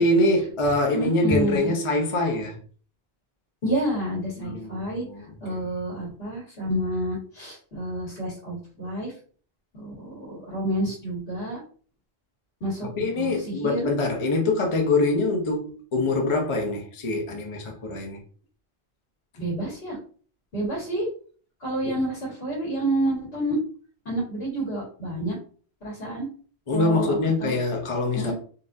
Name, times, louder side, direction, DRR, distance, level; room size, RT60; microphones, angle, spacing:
voice 1, 0.0-2.6 4.4-5.6 12.8-18.2 21.8-21.9 26.7-28.3, left 2 dB, 35° left, 0.6 m, -24 dB
voice 2, 0.9-1.7 3.6-5.0 5.4-9.1 9.7-11.6 12.6-13.9 19.4-20.0 20.5-21.1 21.6-23.6 24.1-25.4 25.8-26.3 26.7-27.6 28.1-28.3, right 1 dB, 70° left, 1.8 m, -29 dB
3.9 x 2.4 x 2.5 m
omnidirectional pair, 1.1 m